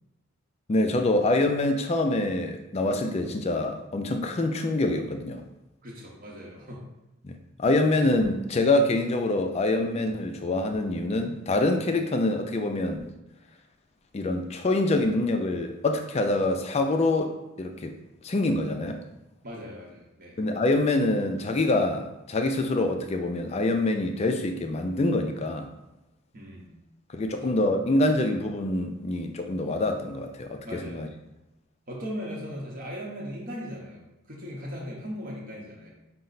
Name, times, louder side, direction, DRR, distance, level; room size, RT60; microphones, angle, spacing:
voice 1, 0.7-5.4 7.2-13.1 14.1-18.0 18.2-19.0 20.4-25.7 27.1-31.1, left 2 dB, 30° left, 5 dB, 0.3 m, -25 dB
voice 2, 5.8-6.8 19.4-20.4 26.3-26.7 27.4-27.5 30.6-31.0 31.9-35.9, equal, 40° right, -3 dB, 0.8 m, -38 dB
5.4 x 2.0 x 3.9 m, 0.95 s
head